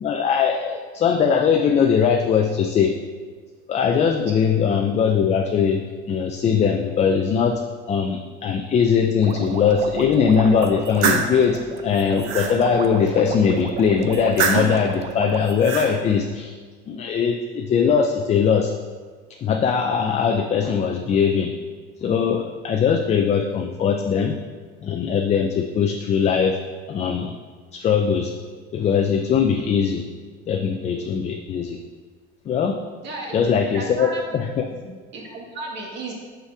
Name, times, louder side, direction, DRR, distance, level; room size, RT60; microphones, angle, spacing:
voice 1, 0.0-2.9 3.7-5.8 6.1-7.6 7.9-16.5 16.9-18.7 19.4-21.5 22.0-24.4 24.8-26.6 26.9-27.3 27.7-28.3 28.7-30.0 30.5-31.8 32.5-32.8 33.3-34.6, left 6 dB, 30° left, 3 dB, 0.4 m, -20 dB
sound 1, 9.2-15.4, right 5 dB, 30° right, 0.5 m, -33 dB
sound 2, 10.6-11.3 11.9-12.5 14.1-14.8 15.4-15.9, right 5 dB, 75° right, 1.0 m, -24 dB
voice 2, 33.0-33.4 33.7-34.4 34.8-36.1, right 2 dB, 60° right, -1 dB, 1.9 m, -34 dB
5.5 x 5.0 x 5.9 m, 1.5 s
cardioid pair, 130°, 21 cm